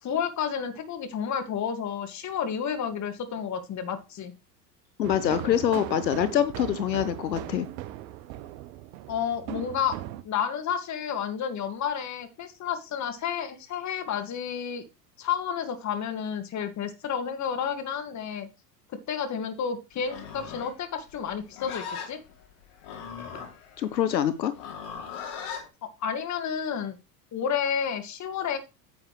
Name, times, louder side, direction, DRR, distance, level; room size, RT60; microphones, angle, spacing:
voice 1, 0.0-4.3 9.1-10.0 10.2-14.8 15.2-18.5 18.9-22.2 25.8-27.0 27.3-28.6, left 7 dB, 35° left, 9 dB, 2.1 m, -31 dB
voice 2, 5.0-7.7 23.8-24.5, left 10 dB, 85° left, 15 dB, 0.9 m, -25 dB
sound 1, 5.0-10.2, right 14 dB, 55° right, 1.1 m, -38 dB
Livestock farm animals working animals, 20.0-25.7, left 6 dB, 60° left, 3.0 m, -39 dB
9.5 x 8.4 x 3.2 m, 0.27 s
hypercardioid pair, 85°, 49 cm